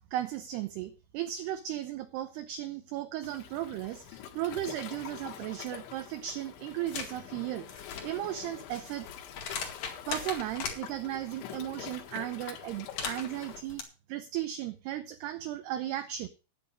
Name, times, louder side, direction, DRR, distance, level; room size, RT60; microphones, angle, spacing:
voice 1, 0.1-9.2 10.1-13.8 14.1-16.3, right 12 dB, 80° right, 10 dB, 2.4 m, -36 dB
Waves surf, 3.2-13.6, left 10 dB, 75° left, 3.6 m, -46 dB
sound 1, 6.9-7.1 7.6-10.8 12.7-13.8, left 6 dB, 55° left, 3.2 m, -39 dB
11.0 x 9.3 x 5.3 m, 0.33 s
omnidirectional pair, 5.6 m